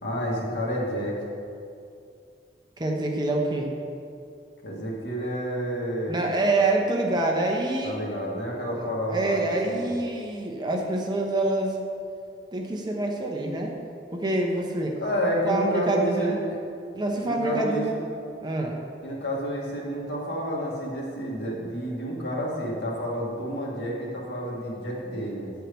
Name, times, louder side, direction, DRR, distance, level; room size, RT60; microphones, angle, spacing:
voice 1, 0.0-1.2 4.6-6.3 7.8-9.9 15.0-16.6 17.2-18.0 19.0-25.5, equal, 70° left, -4 dB, 2.0 m, -30 dB
voice 2, 2.8-3.8 6.1-8.0 8.7-11.8 12.5-13.7 14.1-15.0 15.5-16.4 16.9-18.0 18.4-18.8, right 2 dB, 25° right, 1 dB, 0.8 m, -26 dB
9.0 x 4.6 x 6.8 m, 2.5 s
head